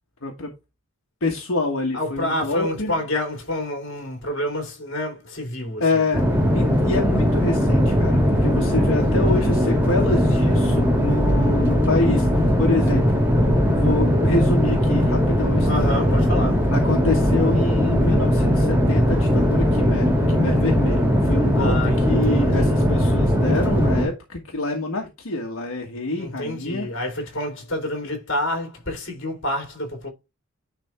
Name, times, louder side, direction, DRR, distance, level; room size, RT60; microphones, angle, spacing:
voice 1, 1.2-2.9 5.8-13.2 13.7-15.9 16.7-26.9, left 2 dB, 75° left, 1.4 m, -27 dB
voice 2, 1.9-6.0 15.6-16.6 21.5-22.9 26.2-30.1, left 1 dB, 60° left, 2.8 m, -28 dB
sound 1, 6.1-24.0, equal, 10° right, 1.9 m, -19 dB
10.0 x 3.5 x 4.3 m
head